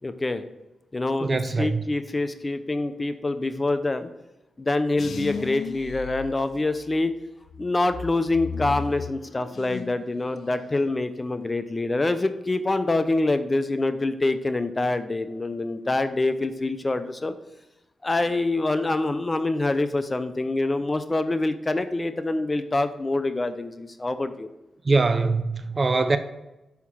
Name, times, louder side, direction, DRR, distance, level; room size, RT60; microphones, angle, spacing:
voice 1, 0.0-0.4 0.9-4.1 4.6-7.1 7.6-17.3 18.0-24.5, left 2 dB, 30° left, 0.6 m, -25 dB
voice 2, 1.2-1.8 24.8-26.2, right 3 dB, 40° right, 0.5 m, -22 dB
sound 1, 5.0-7.0 7.5-10.1 10.4-10.9, left 6 dB, 70° left, 0.3 m, -36 dB
5.7 x 5.6 x 6.2 m
cardioid pair, 55°, 0 cm